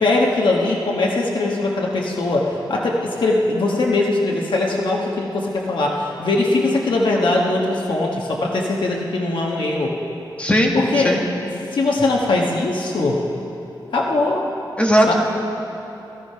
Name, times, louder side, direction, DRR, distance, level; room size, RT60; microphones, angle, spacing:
voice 1, 0.0-9.9 10.7-11.2 11.7-13.2 13.9-14.5 15.1-15.2, left 2 dB, 80° left, -1 dB, 1.4 m, -20 dB
voice 2, 10.4-11.2 14.8-15.1, equal, 15° left, 0 dB, 1.6 m, -18 dB
16.5 x 13.5 x 5.6 m, 2.9 s
wide cardioid pair, 120°, 8 cm